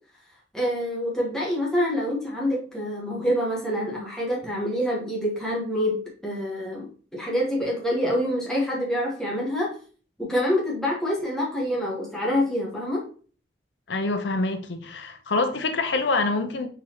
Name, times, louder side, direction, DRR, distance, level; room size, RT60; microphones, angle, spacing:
voice 1, 0.5-9.7 10.2-13.0, equal, 5° left, 1.2 m, -26 dB
voice 2, 13.9-16.7, left 3 dB, 85° left, 0.7 m, -26 dB
4.6 x 4.0 x 2.8 m
head